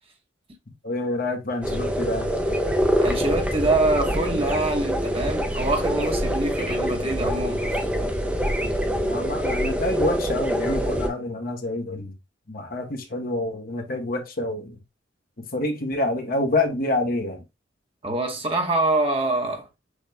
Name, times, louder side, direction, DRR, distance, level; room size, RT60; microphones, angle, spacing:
voice 1, 0.8-2.3 9.0-12.1 12.5-14.8 15.4-17.4, left 2 dB, 50° left, 0.9 m, -27 dB
sound 1, 1.6-11.1, equal, 5° right, 0.6 m, -25 dB
voice 2, 3.0-7.8 18.0-19.7, right 2 dB, 30° right, 1.1 m, -25 dB
6.4 x 2.3 x 3.3 m
head